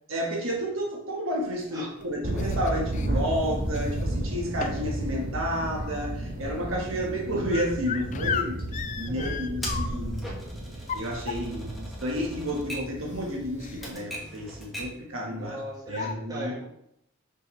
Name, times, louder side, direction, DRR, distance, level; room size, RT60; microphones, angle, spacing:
voice 1, 0.1-8.6 9.0-10.3 10.9-15.6 15.9-16.5, equal, 70° right, -1 dB, 1.4 m, -31 dB
sound 1, 1.6-3.1 3.7-4.2 4.6-5.0 5.3-10.2 10.7-11.7 12.6-12.7 13.0-13.2 13.6-14.0 14.3-14.5 15.4-15.5 15.9-16.1, left 7 dB, 35° left, 0.4 m, -36 dB
sound 2, 2.2-13.9, right 1 dB, 50° right, 1.8 m, -33 dB
voice 2, 8.9-9.5 15.4-16.7, right 1 dB, 20° right, -5 dB, 1.6 m, -39 dB
Typewriter, 9.6-15.1, equal, ahead, 1.5 m, -41 dB
6.2 x 5.7 x 3.2 m, 0.76 s
head